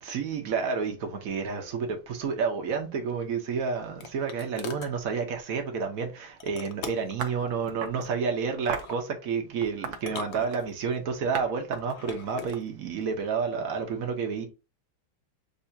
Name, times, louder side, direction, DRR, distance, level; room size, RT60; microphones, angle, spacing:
voice 1, 0.0-14.4, right 5 dB, 55° right, 1.1 m, -30 dB
sound 1, 3.2-5.0 6.4-7.2 8.6-9.0 9.9-11.0 11.8-12.6, left 7 dB, 85° left, 0.6 m, -42 dB
sound 2, 7.2-8.1 8.7-9.0 9.6-10.7 11.3-11.5 11.7-13.1, right 6 dB, 85° right, 1.5 m, -36 dB
6.8 x 2.7 x 2.7 m
omnidirectional pair, 2.1 m